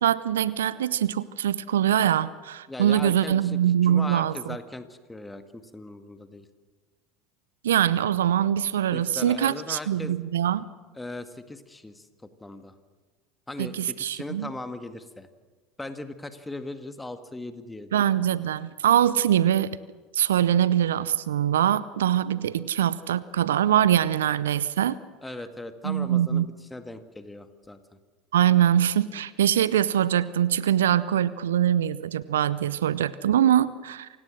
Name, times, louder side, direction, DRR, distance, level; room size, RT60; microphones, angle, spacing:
voice 1, 0.0-4.6 7.6-10.6 13.6-14.5 17.9-19.8 20.1-25.0 25.8-26.5 28.3-34.1, right 10 dB, 75° right, 18 dB, 0.6 m, -23 dB
voice 2, 2.7-6.5 8.9-10.2 10.9-12.7 13.5-15.3 15.8-17.9 22.6-22.7 25.2-27.8, left 2 dB, 10° left, 9 dB, 1.9 m, -39 dB
27.5 x 17.5 x 6.5 m, 1.4 s
figure-of-eight pair, 75°, 0 cm